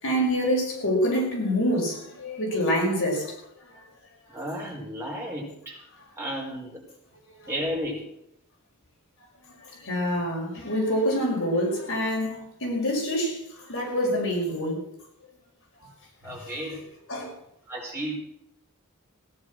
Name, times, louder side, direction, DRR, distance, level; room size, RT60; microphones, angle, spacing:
voice 1, 0.0-3.4 3.7-3.8 7.4-7.5 9.4-14.9 16.2-16.5 17.1-17.3, equal, 60° left, -1 dB, 5.6 m, -26 dB
voice 2, 4.3-5.8 6.2-6.8 7.5-8.0 16.2-16.9 17.7-18.2, equal, 10° right, -3 dB, 5.1 m, -33 dB
17.0 x 10.5 x 6.3 m, 0.76 s
head